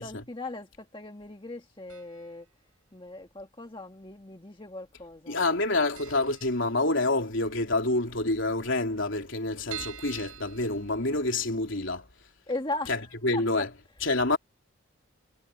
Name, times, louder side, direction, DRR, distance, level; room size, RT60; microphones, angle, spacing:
voice 1, 0.0-2.5 2.9-5.4 12.5-13.1 13.3-13.4, left 2 dB, 25° left, 1.7 m, -38 dB
sound 1, 1.9-2.4 2.7-2.8 3.7-4.4 4.7-4.9 5.1-5.2 5.6-5.7 5.9-7.3 7.6-7.7 8.0-8.1 8.3-8.4 8.9-11.5 12.0-12.1 12.4-12.5, right 12 dB, 90° right, 4.7 m, -45 dB
voice 2, 5.3-12.1 12.9-13.0 13.2-13.7 14.0-14.4, left 2 dB, 60° left, 3.6 m, -27 dB
head